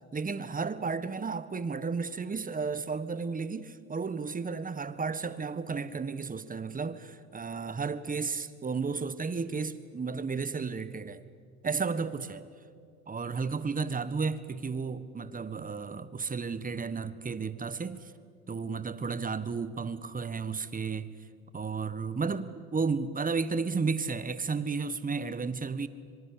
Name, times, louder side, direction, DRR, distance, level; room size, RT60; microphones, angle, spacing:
voice 1, 0.1-11.2 11.6-12.4 13.1-18.1 18.5-21.1 21.5-25.9, right 4 dB, 20° right, 1.5 m, -33 dB
25.0 x 24.0 x 8.6 m
hypercardioid pair, 80°, 43 cm